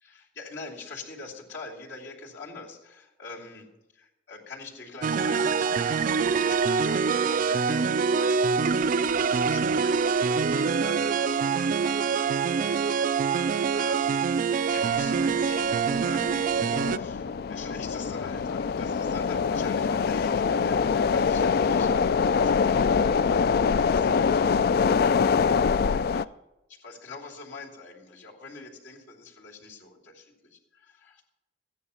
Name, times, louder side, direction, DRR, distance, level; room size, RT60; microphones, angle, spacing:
voice 1, 0.0-3.7 3.9-13.1 13.7-16.4 16.8-25.2 25.5-26.3 26.7-31.2, left 3 dB, 75° left, -2 dB, 2.8 m, -44 dB
sound 1, 5.0-17.0, right 5 dB, 45° right, 0.3 m, -25 dB
sound 2, 14.7-26.2, left 5 dB, 55° left, 0.3 m, -25 dB
14.5 x 9.9 x 5.7 m, 0.98 s
head